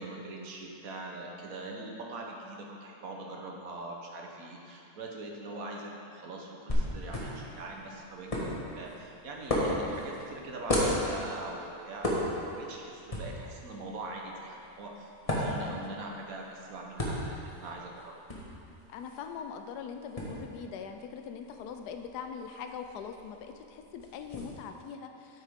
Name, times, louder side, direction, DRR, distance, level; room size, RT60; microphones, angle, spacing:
voice 1, 0.0-15.1 15.4-18.2, right 2 dB, 65° right, 0 dB, 1.3 m, -42 dB
sound 1, 6.7-24.4, left 1 dB, 25° left, 1.3 m, -36 dB
voice 2, 15.7-16.0 18.9-25.4, left 6 dB, 80° left, 6 dB, 1.1 m, -42 dB
9.0 x 8.5 x 3.6 m, 2.7 s
omnidirectional pair, 1.7 m